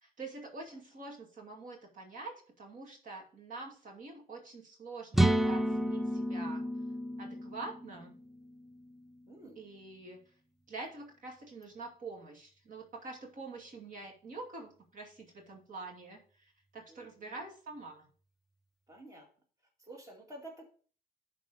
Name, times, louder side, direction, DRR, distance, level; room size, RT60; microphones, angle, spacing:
voice 1, 0.0-6.6 7.2-8.1 9.6-10.2 10.7-18.0, right 3 dB, 55° right, 2 dB, 2.5 m, -46 dB
sound 1, 5.1-8.9, right 1 dB, ahead, 0.3 m, -31 dB
voice 2, 9.3-9.6 16.9-17.4 18.9-19.3 19.8-20.7, right 1 dB, 20° right, 0 dB, 2.2 m, -50 dB
11.5 x 4.1 x 5.5 m, 0.42 s
cardioid pair, 150°, 16 cm